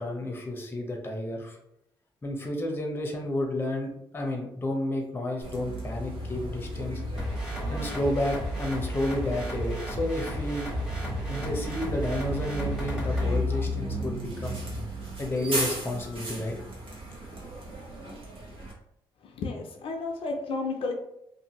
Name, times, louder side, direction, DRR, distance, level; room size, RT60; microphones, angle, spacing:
voice 1, 0.0-1.6 2.2-7.0 7.7-10.7 11.3-14.6 15.2-16.6, left 1 dB, 20° left, 1 dB, 0.7 m, -31 dB
Bus, 5.4-18.7, equal, 65° right, 1.1 m, -35 dB
sound 1, 7.2-13.4, equal, 5° right, 1.2 m, -34 dB
voice 2, 19.2-20.9, left 3 dB, 70° left, 2 dB, 0.5 m, -32 dB
2.6 x 2.6 x 2.9 m, 0.79 s
cardioid pair, 95°, 10 cm